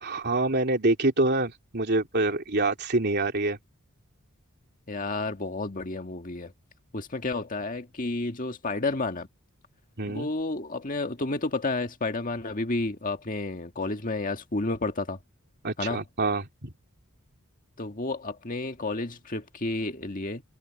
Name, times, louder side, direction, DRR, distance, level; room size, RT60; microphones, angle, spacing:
voice 1, 0.0-3.6 10.0-10.3 15.6-16.7, right 2 dB, 50° right, 3.2 m, -26 dB
voice 2, 4.9-6.5 6.9-9.3 10.1-15.2 15.8-16.0 17.8-20.4, left 2 dB, 40° left, 1.8 m, -31 dB
head